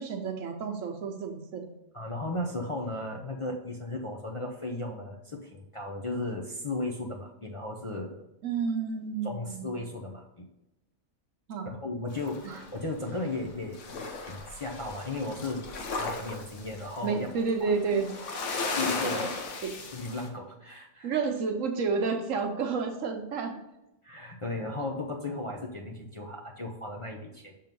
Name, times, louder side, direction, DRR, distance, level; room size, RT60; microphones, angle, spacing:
voice 1, 0.0-1.7 8.4-9.7 11.5-11.8 12.4-12.6 17.0-18.1 19.6-19.7 21.0-23.6, right 5 dB, 75° right, 4 dB, 1.2 m, -30 dB
voice 2, 1.9-8.2 9.2-10.5 11.6-15.7 16.0-17.3 17.6-17.7 18.7-19.4 19.9-21.1 24.0-27.6, left 2 dB, 35° left, -1 dB, 0.5 m, -35 dB
sound 1, 12.1-13.5 13.7-20.3, left 3 dB, 65° left, 1.2 m, -36 dB
6.0 x 3.8 x 5.2 m, 0.90 s
omnidirectional pair, 1.4 m